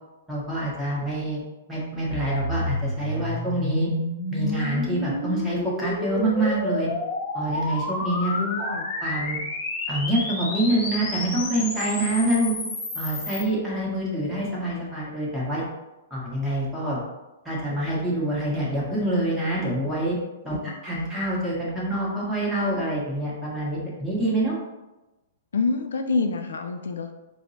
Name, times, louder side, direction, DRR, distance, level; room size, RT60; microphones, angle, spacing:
voice 1, 0.3-1.4 1.7-3.9 4.3-6.9 7.3-8.3 8.6-8.8 9.0-9.4 9.9-12.5 12.9-15.6 16.1-17.0 17.4-20.2 20.4-20.6 20.8-24.6, right 1 dB, 5° right, -7 dB, 1.2 m, -26 dB
sound 1, 2.1-13.4, left 2 dB, 35° left, 1.0 m, -30 dB
voice 2, 8.3-8.9 20.5-20.8 25.5-27.1, left 4 dB, 80° left, 5 dB, 0.3 m, -27 dB
4.3 x 2.0 x 2.7 m, 1.0 s
hypercardioid pair, 125°, 0 cm